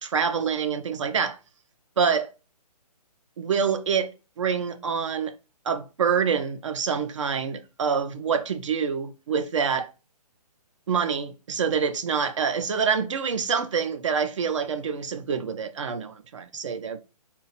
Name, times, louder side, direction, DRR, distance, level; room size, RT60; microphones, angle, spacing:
voice 1, 0.0-1.4 2.0-2.3 3.4-4.1 4.4-5.3 5.7-9.9 10.9-17.0, right 6 dB, 50° right, 0.5 m, -26 dB
4.0 x 2.3 x 4.0 m
hypercardioid pair, 160°, 20 cm